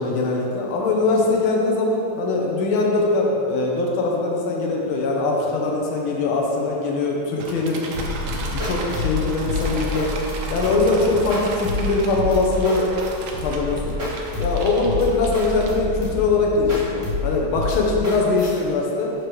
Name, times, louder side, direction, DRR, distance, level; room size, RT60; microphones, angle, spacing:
voice 1, 0.0-7.8 8.3-10.1 10.5-12.9 13.4-14.0 14.4-19.1, left 3 dB, 75° left, -1 dB, 1.7 m, -22 dB
sound 1, 7.4-16.1, right 3 dB, 70° right, 1.4 m, -35 dB
sound 2, 7.9-18.6, left 2 dB, 30° right, 1.7 m, -28 dB
11.0 x 4.6 x 3.1 m, 2.7 s
omnidirectional pair, 2.4 m